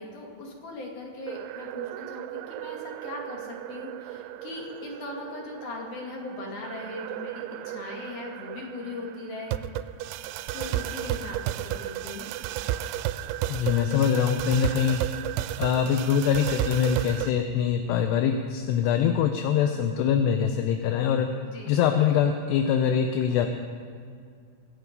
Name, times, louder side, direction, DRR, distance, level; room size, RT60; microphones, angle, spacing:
voice 1, 0.0-9.9 10.5-12.3 21.4-21.8, left 2 dB, 50° left, -1 dB, 3.3 m, -39 dB
sound 1, 1.3-17.3, right 13 dB, 85° right, 2.9 m, -34 dB
voice 2, 13.5-15.0 15.6-21.3 21.7-23.5, left 8 dB, 80° left, 6 dB, 2.5 m, -23 dB
25.0 x 9.4 x 5.4 m, 2.2 s
omnidirectional pair, 5.4 m